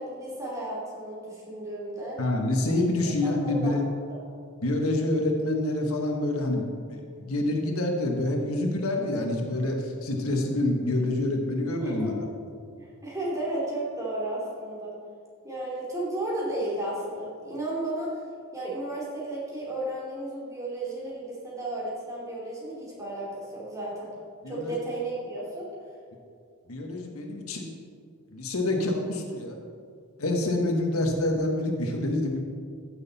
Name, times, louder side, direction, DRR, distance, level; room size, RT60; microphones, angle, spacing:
voice 1, 0.0-2.2 3.0-3.8 4.1-4.3 11.8-12.2 12.8-14.9 15.4-18.2 18.5-24.1 24.5-25.7, right 1 dB, 15° right, -6 dB, 3.0 m, -33 dB
voice 2, 2.2-3.8 4.6-12.1 24.4-24.8 26.7-27.7 28.3-29.6 30.2-32.4, left 1 dB, 80° left, 2 dB, 1.4 m, -27 dB
14.5 x 6.6 x 4.1 m, 2.2 s
head